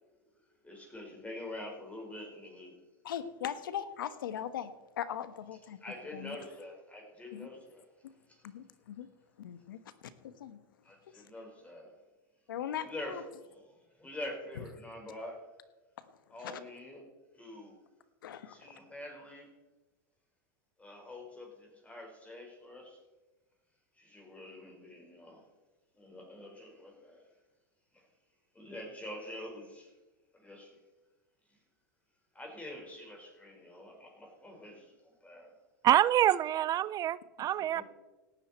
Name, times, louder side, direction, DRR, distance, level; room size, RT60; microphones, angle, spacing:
voice 1, 0.6-2.8 5.8-7.8 8.3-8.4 10.8-11.9 12.8-15.4 16.3-17.1 17.3-17.8 18.5-19.5 20.8-23.0 24.0-25.4 25.9-27.2 28.5-29.9 30.3-30.8 32.3-35.5 37.6-37.8, left 1 dB, 10° left, 1 dB, 5.0 m, -46 dB
voice 2, 3.0-4.7 5.0-5.8 6.1-6.4 7.3-7.5 8.4-9.1 9.4-9.8 10.2-10.6 12.5-13.2 16.4-16.6 18.2-18.6, left 9 dB, 90° left, 12 dB, 1.2 m, -39 dB
voice 3, 35.8-37.8, right 12 dB, 35° right, 20 dB, 0.4 m, -26 dB
17.5 x 12.5 x 4.5 m, 1.1 s
supercardioid pair, 115°, 11 cm